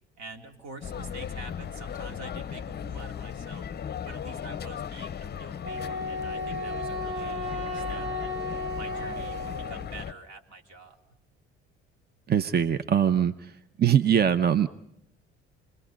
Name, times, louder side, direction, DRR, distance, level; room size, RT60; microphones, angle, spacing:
voice 1, 0.2-3.7 4.0-8.4 8.7-11.0, right 3 dB, 55° right, 4 dB, 3.7 m, -46 dB
sound 1, 0.8-10.1, left 8 dB, 30° left, 0.8 m, -37 dB
Wind instrument woodwind instrument, 5.6-9.9, left 1 dB, 80° right, 2.2 m, -34 dB
voice 2, 12.3-13.5 13.8-14.7, right 9 dB, 30° right, 12 dB, 0.9 m, -22 dB
28.5 x 21.0 x 5.3 m, 0.80 s
figure-of-eight pair, 50°, 32 cm